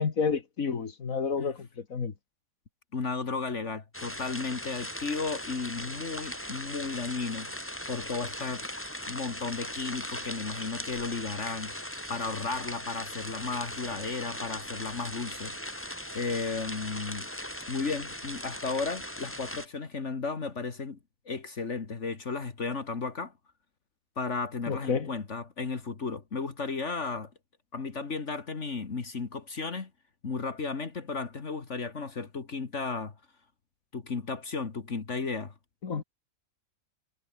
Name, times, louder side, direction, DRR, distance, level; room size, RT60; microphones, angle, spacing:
voice 1, 0.0-2.1 24.7-25.1 35.8-36.0, left 5 dB, 80° left, 2.3 m, -30 dB
voice 2, 2.9-7.5 7.9-8.6 9.1-17.3 17.7-21.0 21.3-23.3 24.2-27.3 27.7-29.9 30.2-33.1 33.9-35.5, left 4 dB, 60° left, 2.3 m, -34 dB
sound 1, 3.9-19.7, equal, 10° left, 4.8 m, -39 dB
omnidirectional pair, 1.4 m